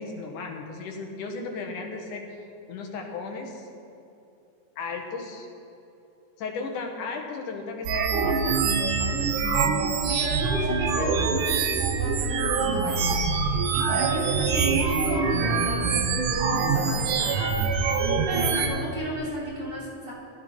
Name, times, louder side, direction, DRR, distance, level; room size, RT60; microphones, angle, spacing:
voice 1, 0.0-2.4 2.7-3.7 4.8-5.5 6.4-8.7 9.0-9.3, left 4 dB, 80° left, 2 dB, 3.0 m, -35 dB
sound 1, 7.8-18.7, right 5 dB, 90° right, 2.6 m, -24 dB
voice 2, 10.1-20.1, right 1 dB, 35° right, -7 dB, 3.8 m, -33 dB
18.5 x 12.5 x 4.5 m, 2.8 s
omnidirectional pair, 3.5 m